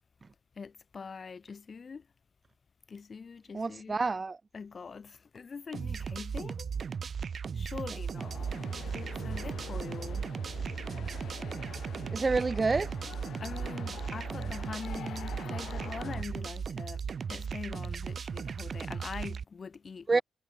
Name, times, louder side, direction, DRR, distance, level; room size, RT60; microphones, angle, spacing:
voice 1, 0.5-2.1 2.9-4.0 4.5-6.7 7.5-8.5 8.9-10.3 13.4-17.0 17.3-20.2, left 5 dB, 40° left, 3.2 m, -43 dB
voice 2, 3.5-4.4 12.1-12.9 20.1-20.2, right 3 dB, 25° right, 1.0 m, -28 dB
sound 1, 5.7-19.4, right 6 dB, 45° right, 3.8 m, -36 dB
sound 2, 8.2-16.2, left 9 dB, 65° left, 6.6 m, -46 dB
cardioid pair, 90°, 0 cm